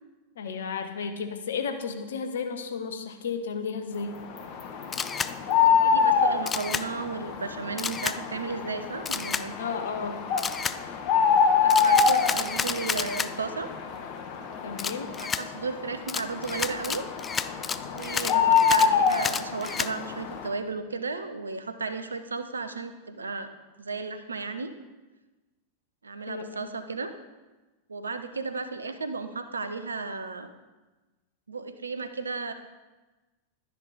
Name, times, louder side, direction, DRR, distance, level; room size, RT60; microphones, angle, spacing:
voice 1, 0.4-4.2 9.6-10.2 14.6-15.1 18.2-18.4 26.3-26.7, left 5 dB, 60° left, 7 dB, 1.0 m, -33 dB
sound 1, 4.2-20.5, left 6 dB, 40° left, 1.2 m, -26 dB
Camera, 4.9-5.3 6.5-6.8 7.8-8.2 9.0-9.4 10.4-10.8 11.7-13.3 14.8-15.4 16.1-19.9, left 6 dB, 20° left, 0.4 m, -31 dB
voice 2, 5.8-9.6 11.6-13.7 15.2-17.0 17.9-23.5 23.8-24.7 26.0-27.1 27.9-30.5 31.5-32.5, right 4 dB, 75° right, 9 dB, 0.8 m, -34 dB
12.0 x 10.0 x 4.1 m, 1.2 s
figure-of-eight pair, 90°, 0 cm